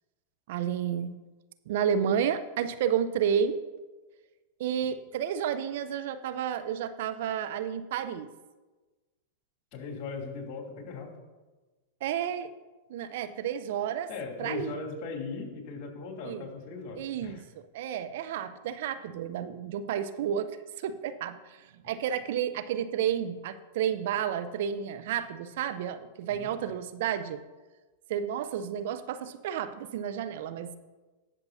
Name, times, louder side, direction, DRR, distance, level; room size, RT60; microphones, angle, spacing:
voice 1, 0.5-1.2 1.7-3.6 4.6-8.3 12.0-12.5 12.9-14.1 14.4-14.8 16.2-16.5 16.9-20.5 20.8-27.4 28.1-30.8, right 8 dB, 65° right, 11 dB, 0.5 m, -31 dB
voice 2, 9.7-11.1 14.1-17.4 26.3-26.5, left 4 dB, 45° left, 0 dB, 2.9 m, -38 dB
19.0 x 6.9 x 2.7 m, 1.2 s
hypercardioid pair, 100°, 0 cm